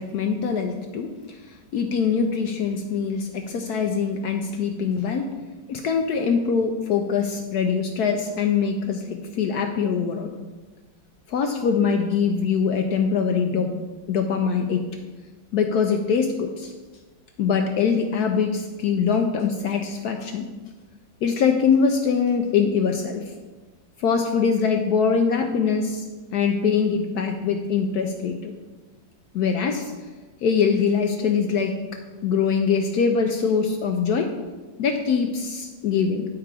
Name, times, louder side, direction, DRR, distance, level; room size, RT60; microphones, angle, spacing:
voice 1, 0.0-1.4 1.7-5.3 5.7-10.3 11.3-13.7 14.1-14.8 15.5-16.7 17.4-20.5 21.2-23.2 24.0-26.0 26.3-28.5 29.3-29.9 30.4-31.8 32.2-34.3 34.8-36.3, left 6 dB, 70° left, 4 dB, 0.9 m, -23 dB
8.7 x 4.6 x 4.8 m, 1.3 s
omnidirectional pair, 2.1 m